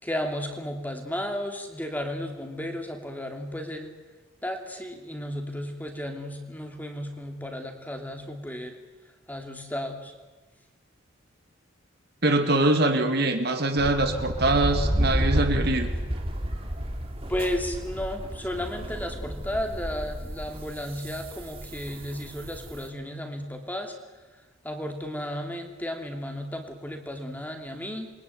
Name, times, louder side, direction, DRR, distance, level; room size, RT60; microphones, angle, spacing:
voice 1, 0.0-3.9 4.4-8.8 9.3-10.1 17.3-23.9 24.6-28.1, left 1 dB, 10° left, 4 dB, 2.9 m, -33 dB
voice 2, 12.2-15.9, right 2 dB, 50° right, 5 dB, 2.6 m, -23 dB
sound 1, 13.8-22.9, equal, 25° right, 2.7 m, -31 dB
27.5 x 23.0 x 9.5 m, 1.2 s
head